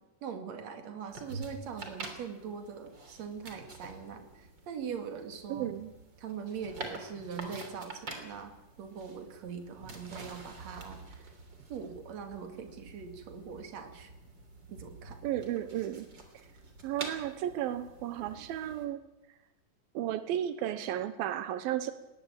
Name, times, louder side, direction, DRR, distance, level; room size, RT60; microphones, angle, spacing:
voice 1, 0.2-5.7 6.2-8.5 8.8-11.3 11.7-14.1 14.7-15.2, right 6 dB, 50° right, 5 dB, 3.4 m, -42 dB
sound 1, 1.1-18.9, right 3 dB, 30° right, 3.6 m, -47 dB
voice 2, 5.5-5.9 15.2-16.1 16.3-16.5 16.8-19.0 19.3-19.4 19.9-21.9, right 11 dB, 85° right, 12 dB, 2.9 m, -34 dB
19.5 x 19.0 x 9.0 m, 0.93 s
omnidirectional pair, 4.1 m